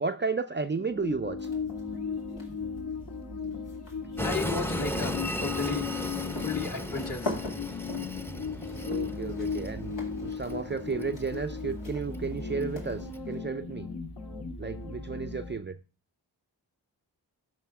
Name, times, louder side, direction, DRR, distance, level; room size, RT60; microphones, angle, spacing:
voice 1, 0.0-1.5 8.8-13.9 14.6-15.8, right 4 dB, 25° right, 8 dB, 0.5 m, -33 dB
sound 1, 0.8-15.6, left 5 dB, 65° left, 1.9 m, -36 dB
sound 2, 1.4-1.8 2.2-13.4, left 2 dB, 80° left, 2.4 m, -42 dB
voice 2, 4.2-6.1 6.4-7.4, left 4 dB, 45° left, 2 dB, 1.8 m, -34 dB
Train, 4.2-13.2, equal, 5° left, 0.7 m, -37 dB
12.5 x 5.1 x 3.6 m, 0.33 s
cardioid pair, 45°, 44 cm